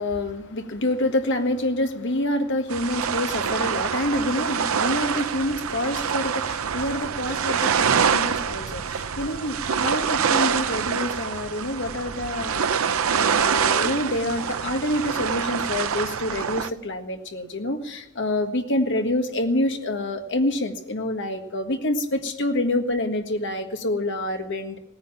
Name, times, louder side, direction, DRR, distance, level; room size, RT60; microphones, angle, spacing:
voice 1, 0.0-24.8, left 1 dB, 55° left, 5 dB, 1.6 m, -27 dB
Mui Wo waves, 2.7-16.7, right 7 dB, 65° right, 0.6 m, -25 dB
18.0 x 9.7 x 7.3 m, 0.87 s
head